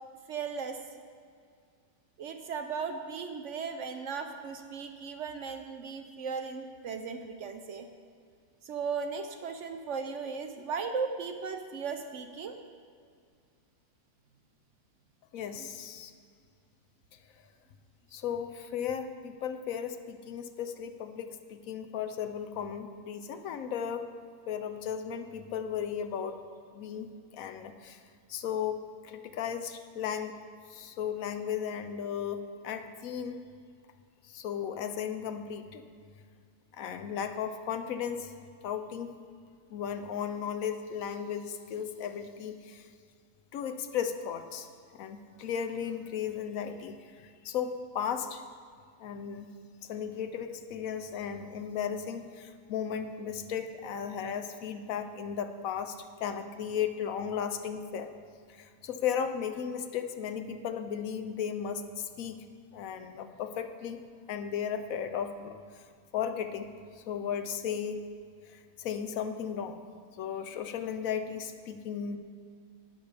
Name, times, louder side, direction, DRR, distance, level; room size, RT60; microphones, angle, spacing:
voice 1, 0.3-0.8 2.2-7.9 8.6-12.6 15.6-15.7, right 5 dB, 65° right, 6 dB, 0.8 m, -36 dB
voice 2, 15.3-16.1 18.1-24.1 24.5-26.4 26.7-27.1 27.3-28.0 28.3-28.8 29.0-30.3 30.7-33.4 34.3-35.8 36.8-38.3 38.6-39.1 39.7-42.8 43.5-44.7 44.9-48.4 49.0-49.5 49.9-58.1 58.6-62.4 62.7-64.0 64.3-65.5 66.1-66.7 67.1-68.0 68.8-69.8 70.2-72.2, left 8 dB, 65° left, 9 dB, 1.0 m, -35 dB
18.5 x 6.9 x 3.4 m, 2.2 s
omnidirectional pair, 1.7 m